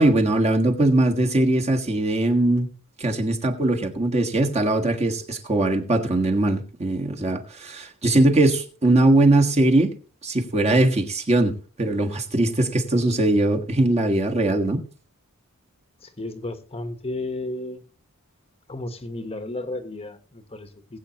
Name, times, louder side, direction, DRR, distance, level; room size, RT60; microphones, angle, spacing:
voice 1, 0.0-2.7 3.0-9.9 10.2-14.8, right 2 dB, 30° right, 1.6 m, -21 dB
voice 2, 16.0-17.8 18.7-21.0, left 2 dB, 25° left, 1.1 m, -33 dB
20.5 x 8.3 x 2.9 m
head